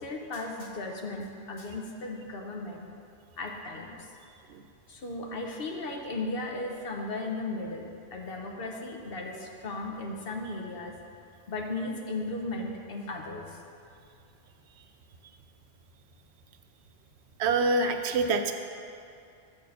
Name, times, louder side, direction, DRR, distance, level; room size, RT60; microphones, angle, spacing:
voice 1, 0.0-2.9 3.4-4.1 4.9-10.9 11.5-13.6, left 2 dB, 65° left, 1 dB, 1.0 m, -36 dB
voice 2, 17.4-18.5, right 3 dB, 85° right, 6 dB, 0.9 m, -25 dB
7.3 x 4.5 x 6.3 m, 2.5 s
omnidirectional pair, 1.1 m